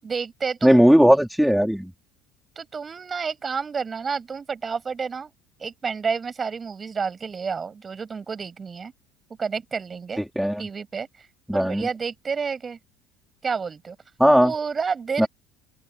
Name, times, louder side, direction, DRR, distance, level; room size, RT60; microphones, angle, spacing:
voice 1, 0.0-0.8 2.6-5.3 5.6-8.9 9.4-10.2 10.6-11.1 11.5-12.8 13.4-14.0 14.4-15.3, right 5 dB, 25° right, 7.6 m, -30 dB
voice 2, 0.6-1.9 10.4-10.6 11.5-11.8 14.2-14.5 15.2-15.3, equal, ahead, 4.1 m, -17 dB
supercardioid pair, 115°, 0 cm